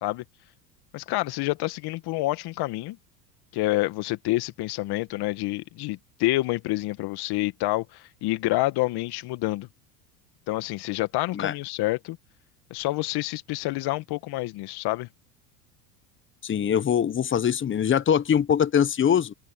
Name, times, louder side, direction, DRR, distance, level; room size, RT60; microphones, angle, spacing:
voice 1, 0.9-3.0 3.5-9.7 10.5-12.2 12.7-15.1, left 19 dB, 55° left, 1.9 m, -28 dB
voice 2, 16.4-19.3, left 8 dB, 25° left, 1.2 m, -22 dB
open air
hypercardioid pair, 90°, 48 cm